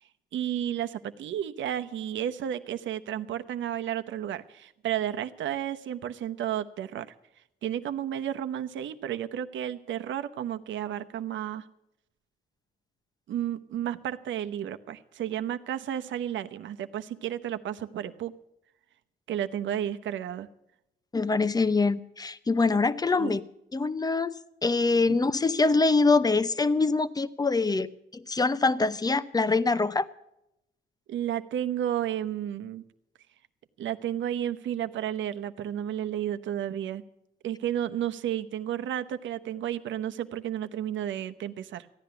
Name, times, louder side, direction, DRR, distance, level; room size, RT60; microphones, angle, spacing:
voice 1, 0.3-7.1 7.6-11.7 13.3-18.3 19.3-20.5 23.1-23.3 31.1-32.8 33.8-37.0 37.4-41.9, right 10 dB, 70° right, 9 dB, 0.9 m, -32 dB
voice 2, 21.1-23.4 23.7-30.1, left 3 dB, 20° left, 14 dB, 0.7 m, -24 dB
15.0 x 10.5 x 6.9 m, 0.83 s
cardioid pair, 90°, 20 cm